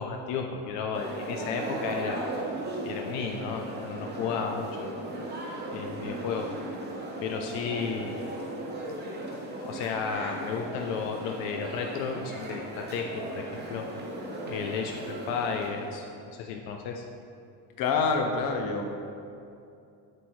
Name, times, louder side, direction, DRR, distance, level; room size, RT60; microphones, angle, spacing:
voice 1, 0.0-2.3 2.8-4.9 5.7-6.5 7.2-8.2 9.7-13.9 14.5-17.0, left 6 dB, 75° left, 3 dB, 0.6 m, -33 dB
sound 1, 0.9-16.1, right 1 dB, 25° right, 1.1 m, -37 dB
voice 2, 17.8-18.8, left 4 dB, 50° left, 4 dB, 0.9 m, -26 dB
7.6 x 6.2 x 3.1 m, 2.6 s
cardioid pair, 145°, 43 cm